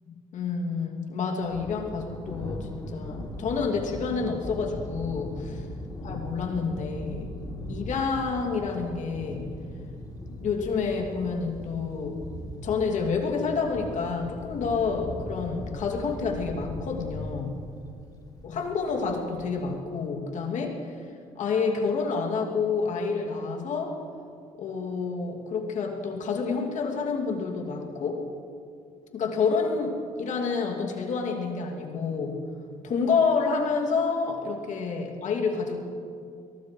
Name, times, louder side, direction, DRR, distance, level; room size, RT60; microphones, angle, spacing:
voice 1, 0.1-5.6 6.0-7.3 7.7-9.5 10.3-12.2 12.6-17.6 18.4-20.8 21.4-24.0 24.6-28.2 29.1-32.4 32.8-35.8, left 5 dB, 65° left, 0 dB, 2.6 m, -28 dB
Thunder, 1.4-19.8, left 1 dB, 30° left, 3.1 m, -39 dB
23.0 x 18.5 x 3.2 m, 2.4 s
cardioid pair, 85°, 14 cm